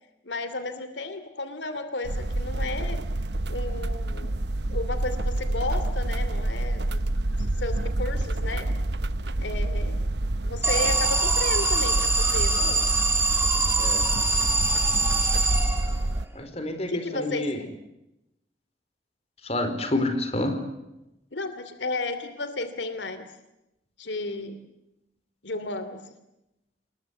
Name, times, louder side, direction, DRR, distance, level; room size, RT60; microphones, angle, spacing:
voice 1, 0.2-3.0 3.5-4.3 4.7-7.0 7.6-8.7 9.4-10.1 10.4-12.9 16.9-17.7 21.3-23.3 24.0-24.6 25.4-26.0, left 2 dB, 85° left, 10 dB, 2.8 m, -33 dB
sound 1, 2.0-16.3, right 1 dB, 70° right, 1.0 m, -28 dB
Alarm, 10.6-16.2, right 3 dB, 15° right, 3.0 m, -24 dB
voice 2, 16.3-17.6 19.4-20.6, left 1 dB, 35° left, 7 dB, 4.6 m, -28 dB
28.0 x 22.0 x 8.3 m, 0.90 s
head